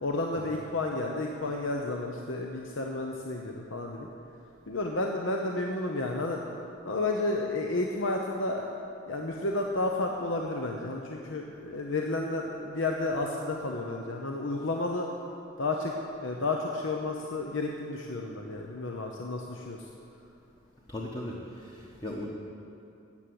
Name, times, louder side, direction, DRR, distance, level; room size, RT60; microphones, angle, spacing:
voice 1, 0.0-4.1 4.7-6.4 6.8-8.7 9.1-15.1 15.6-15.9 16.2-19.8, left 2 dB, 75° left, 1 dB, 1.0 m, -31 dB
voice 2, 20.9-22.3, left 1 dB, 25° left, -2 dB, 1.1 m, -38 dB
13.5 x 8.5 x 7.8 m, 2.7 s
head